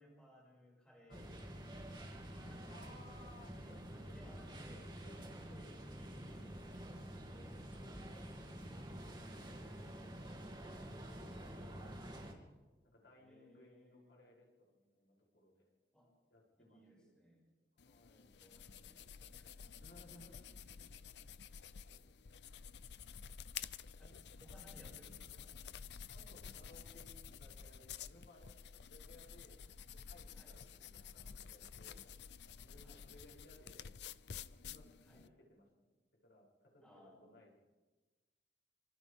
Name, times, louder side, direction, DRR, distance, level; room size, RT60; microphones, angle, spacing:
voice 1, 0.0-1.9 2.2-3.3 4.1-4.8 5.3-6.7 13.2-14.2 15.9-16.1 16.6-17.4 18.4-19.8 24.0-25.9 30.3-30.6 32.7-33.1 35.0-35.3 36.8-37.3, equal, 5° left, -4 dB, 6.5 m, -63 dB
sound 1, 1.1-12.3, right 1 dB, 25° right, 2.8 m, -49 dB
voice 2, 2.7-5.8 6.3-6.5 7.7-10.0 10.7-12.3 12.8-15.7 16.3-17.1 17.8-18.3 19.8-21.3 21.9-23.1 26.1-32.1 32.6-33.9 34.5-35.9 36.2-36.9 37.2-37.6, left 1 dB, 85° left, -4 dB, 7.8 m, -63 dB
sound 2, 17.8-35.3, left 7 dB, 70° left, 0.6 m, -51 dB
27.0 x 26.5 x 3.7 m, 1.2 s
head